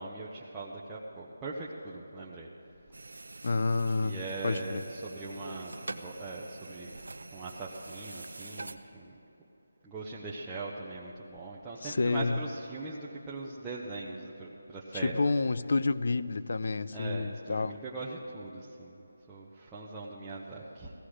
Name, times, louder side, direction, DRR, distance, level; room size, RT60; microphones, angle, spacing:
voice 1, 0.0-2.5 4.0-7.0 7.3-9.2 9.8-15.5 16.9-20.9, right 3 dB, 10° right, -7 dB, 0.7 m, -41 dB
sound 1, 2.9-8.8, right 2 dB, 85° right, 0.7 m, -45 dB
voice 2, 3.4-4.8 11.8-12.4 14.9-17.8, left 3 dB, 55° left, 14 dB, 0.4 m, -29 dB
17.0 x 14.5 x 5.0 m, 3.0 s
figure-of-eight pair, 175°, 0 cm